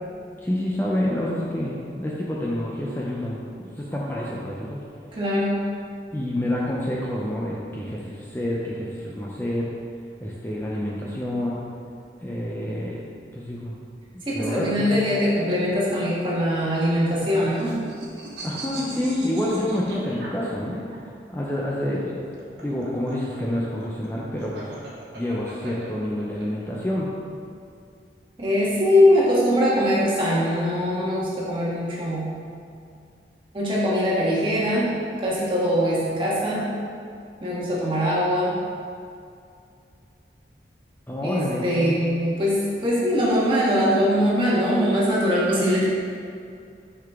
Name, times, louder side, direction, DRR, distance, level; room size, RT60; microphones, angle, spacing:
voice 1, 0.4-3.4 3.8-4.8 6.1-9.7 10.2-11.6 12.2-13.0 13.3-13.7 14.1-14.9 18.4-20.8 21.3-22.3 22.6-24.7 25.1-27.1 41.1-42.1, left 1 dB, 15° left, -5 dB, 0.6 m, -28 dB
voice 2, 5.1-5.6 14.3-17.8 28.4-32.3 33.5-34.9 35.2-36.7 37.4-38.5 41.2-45.9, equal, 30° right, -7 dB, 1.5 m, -22 dB
sound 1, 16.9-21.0 22.2-26.4, right 2 dB, 90° right, 1.5 m, -40 dB
6.2 x 5.9 x 3.5 m, 2.4 s
head